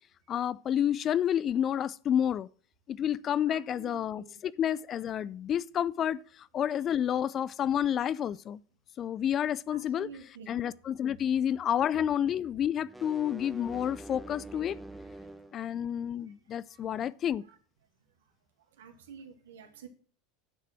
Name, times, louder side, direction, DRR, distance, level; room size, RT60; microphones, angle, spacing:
voice 1, 0.3-2.5 2.9-6.2 6.5-8.6 9.0-10.1 10.5-14.8 15.5-17.4, left 9 dB, 35° left, 0.4 m, -29 dB
voice 2, 3.5-4.4 9.7-10.5 16.7-16.8 18.8-19.9, right 6 dB, 70° right, 2.0 m, -49 dB
sound 1, 12.8-15.6, right 2 dB, 5° right, 1.2 m, -45 dB
9.9 x 6.6 x 6.0 m
figure-of-eight pair, 80°, 0 cm